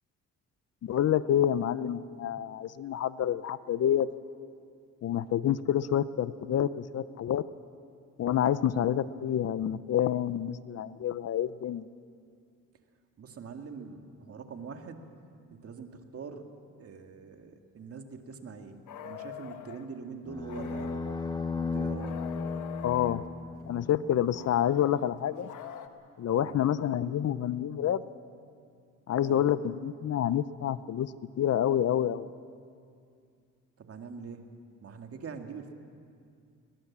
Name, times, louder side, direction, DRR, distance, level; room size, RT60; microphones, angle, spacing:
voice 1, 0.8-4.1 5.0-7.4 8.2-11.9 22.8-23.2 23.7-25.5 26.2-28.0 29.1-31.1 31.4-32.3, left 10 dB, 55° left, 16 dB, 0.7 m, -28 dB
voice 2, 13.2-15.1 15.5-16.5 16.8-18.8 19.0-21.0 21.6-22.2 26.3-26.6 29.2-29.4 33.8-34.5 34.8-35.7, right 5 dB, 50° right, 5 dB, 2.1 m, -43 dB
sound 1, 18.9-19.9 20.5-21.4 22.0-23.3 24.3-25.9, left 10 dB, 80° left, 1.3 m, -44 dB
sound 2, 20.3-24.5, left 4 dB, 15° left, 1.2 m, -35 dB
21.5 x 21.0 x 7.4 m, 2.3 s
cardioid pair, 90°, 30 cm